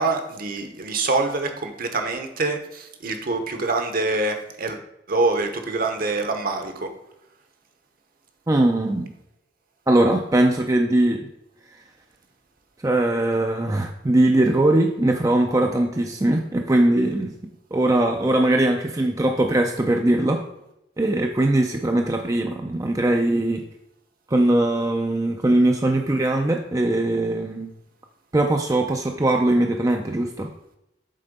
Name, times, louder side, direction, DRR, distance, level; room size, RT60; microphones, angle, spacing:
voice 1, 0.0-4.8 5.1-6.9, right 3 dB, 50° right, 6 dB, 1.0 m, -25 dB
voice 2, 8.5-9.1 9.9-11.3 12.8-17.3 17.7-20.4 21.0-23.6 24.3-27.7 28.3-30.5, right 1 dB, 20° right, 3 dB, 0.5 m, -20 dB
7.6 x 3.8 x 5.2 m, 0.84 s
head